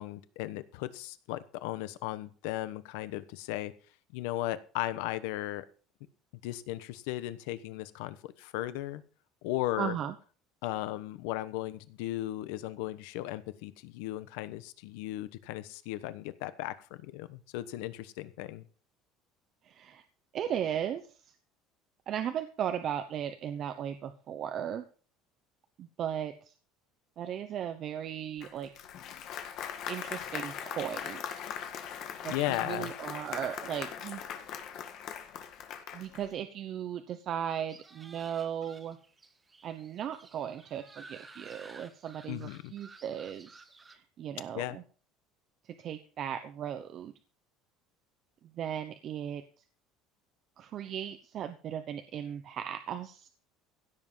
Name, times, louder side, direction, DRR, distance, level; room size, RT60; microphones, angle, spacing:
voice 1, 0.0-3.7 4.1-5.7 6.4-9.0 9.4-9.9 10.6-18.6 32.3-32.9 42.3-42.7 44.5-44.8, left 15 dB, 80° left, 14 dB, 1.0 m, -36 dB
voice 2, 9.8-10.1 19.6-20.0 20.3-21.3 22.1-24.8 25.8-26.5 27.2-28.7 29.9-31.4 32.2-34.2 35.9-39.0 39.6-43.6 43.9-44.8 45.6-47.1 48.5-49.4 50.6-53.3, right 9 dB, 35° right, 8 dB, 0.9 m, -37 dB
Applause, 28.4-36.3, left 8 dB, 40° left, 1.8 m, -40 dB
sound 1, 37.7-44.0, right 3 dB, 15° right, 1.1 m, -54 dB
16.5 x 7.4 x 5.6 m, 0.40 s
cardioid pair, 175°, 0 cm